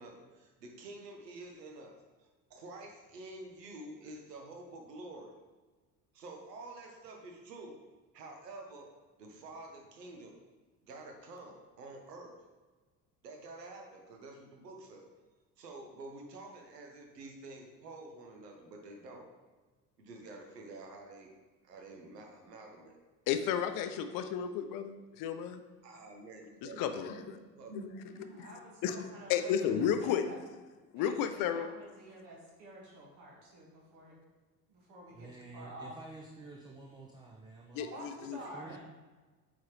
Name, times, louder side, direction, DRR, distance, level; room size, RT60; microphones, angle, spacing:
voice 1, 0.0-5.3 6.1-7.8 8.1-8.9 9.2-10.4 10.8-12.4 13.2-15.1 15.6-19.3 20.0-21.3 21.6-23.0 25.8-28.4, right 2 dB, 75° right, 2 dB, 1.2 m, -49 dB
voice 2, 23.3-25.6 26.8-27.2 27.7-27.8 28.4-28.5 28.8-30.2 30.9-31.7 37.7-38.4, left 8 dB, 45° left, 9 dB, 0.6 m, -32 dB
voice 3, 28.1-30.4 30.9-34.2 34.7-35.9 37.8-38.8, right 1 dB, 55° right, -2 dB, 1.9 m, -50 dB
voice 4, 35.1-37.8 38.5-38.8, right 3 dB, 10° right, 0 dB, 0.5 m, -50 dB
8.4 x 4.0 x 3.2 m, 1.3 s
figure-of-eight pair, 65°, 49 cm